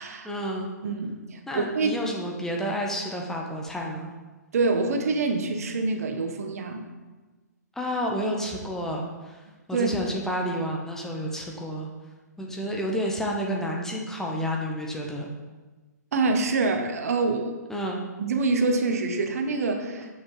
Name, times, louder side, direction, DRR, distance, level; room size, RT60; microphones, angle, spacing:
voice 1, 0.2-0.7 1.5-4.1 7.8-9.4 9.7-11.9 12.4-15.3 17.7-18.0, equal, 5° left, -1 dB, 0.8 m, -30 dB
voice 2, 0.8-2.0 4.5-6.8 9.7-9.9 16.1-17.5 18.2-20.1, right 3 dB, 60° right, 6 dB, 0.8 m, -26 dB
7.3 x 6.0 x 3.1 m, 1.3 s
figure-of-eight pair, 130°, 9 cm